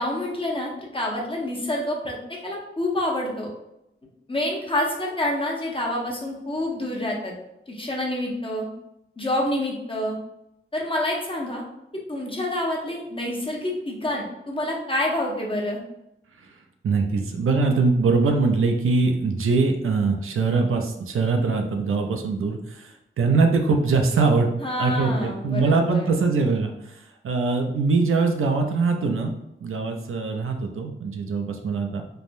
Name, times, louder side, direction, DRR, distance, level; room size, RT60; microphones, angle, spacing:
voice 1, 0.0-3.5 4.3-7.3 7.7-8.7 9.2-10.2 10.7-11.6 11.9-15.8 24.6-26.1, left 1 dB, 25° left, -2 dB, 0.7 m, -27 dB
voice 2, 16.8-24.5 24.8-26.7 27.2-29.3 29.6-32.1, right 4 dB, 80° right, 4 dB, 0.4 m, -22 dB
3.3 x 2.1 x 2.5 m, 0.85 s
wide cardioid pair, 75°, 21 cm